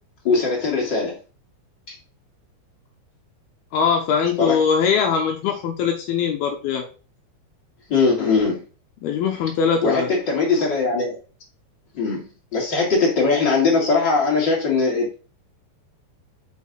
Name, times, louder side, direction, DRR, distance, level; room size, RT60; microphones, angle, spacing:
voice 1, 0.2-1.2 1.9-2.0 4.4-4.6 7.9-8.6 9.8-11.2 11.9-12.2 12.5-15.2, left 4 dB, 30° left, -2 dB, 2.7 m, -20 dB
voice 2, 3.7-6.9 9.0-10.1, left 6 dB, 75° left, 3 dB, 2.4 m, -21 dB
6.6 x 5.3 x 5.6 m, 0.37 s
omnidirectional pair, 5.4 m